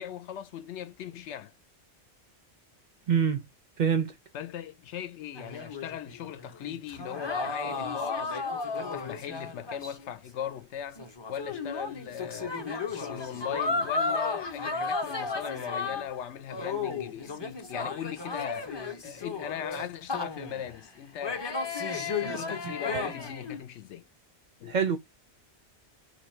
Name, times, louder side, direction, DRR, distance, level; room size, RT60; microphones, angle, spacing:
voice 1, 0.0-1.5 4.3-8.4 8.7-11.0 11.3-12.6 12.9-18.7 19.0-21.4 21.8-24.1 24.6-24.7, left 9 dB, 85° left, 0.9 m, -39 dB
voice 2, 3.1-3.4 3.8-4.1 24.7-25.0, right 7 dB, 55° right, 0.6 m, -25 dB
sound 1, 5.4-10.1 10.4-10.5 11.0-16.2 16.5-20.7 21.2-23.6, left 4 dB, 30° left, 0.6 m, -34 dB
2.9 x 2.6 x 4.2 m
omnidirectional pair, 1.1 m